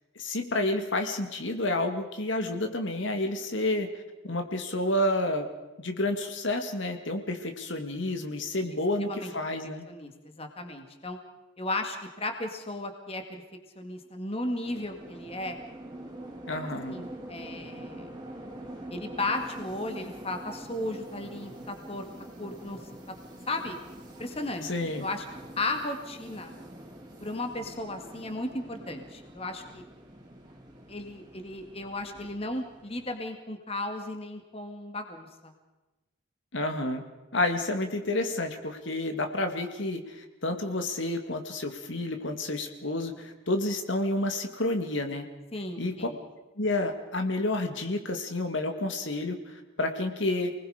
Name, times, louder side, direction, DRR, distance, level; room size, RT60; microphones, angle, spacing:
voice 1, 0.2-5.5 5.8-9.8 16.5-17.1 24.7-25.0 36.5-37.0 37.3-45.3 45.8-46.1 46.6-50.5, left 1 dB, 65° left, 5 dB, 2.1 m, -30 dB
voice 2, 8.6-9.3 9.9-11.2 11.6-13.4 13.8-15.6 16.9-18.1 18.9-22.1 22.4-22.8 23.5-23.8 24.2-24.7 25.0-25.3 25.6-26.5 27.2-29.8 30.9-35.5 45.5-46.2, left 2 dB, 30° left, 5 dB, 2.1 m, -35 dB
sound 1, 14.6-33.1, right 1 dB, 20° right, 3.5 m, -45 dB
29.5 x 20.5 x 5.1 m, 1.1 s
head